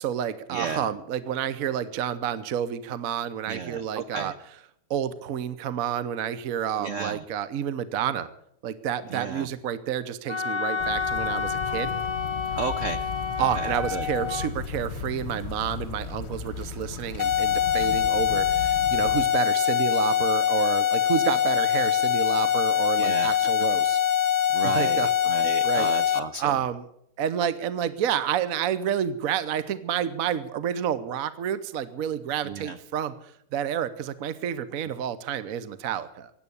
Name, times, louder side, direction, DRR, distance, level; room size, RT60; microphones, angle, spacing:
voice 1, 0.0-4.3 4.9-8.3 8.6-11.9 13.4-24.0 24.6-25.1 25.6-25.9 26.4-26.8 27.2-33.1 33.5-36.3, right 9 dB, 55° right, 14 dB, 1.0 m, -29 dB
voice 2, 0.5-0.9 3.5-4.3 6.8-7.2 9.1-9.5 12.6-13.0 13.4-14.1 23.0-23.5 24.5-26.6 32.4-32.8, right 5 dB, 75° right, 10 dB, 0.7 m, -33 dB
Wind instrument woodwind instrument, 10.3-14.5, left 6 dB, 20° left, 0.9 m, -30 dB
sound 1, 10.8-19.3, left 6 dB, 35° left, 1.4 m, -36 dB
sound 2, 17.2-26.2, left 10 dB, 60° left, 1.3 m, -23 dB
16.0 x 9.8 x 8.5 m, 0.73 s
omnidirectional pair, 2.3 m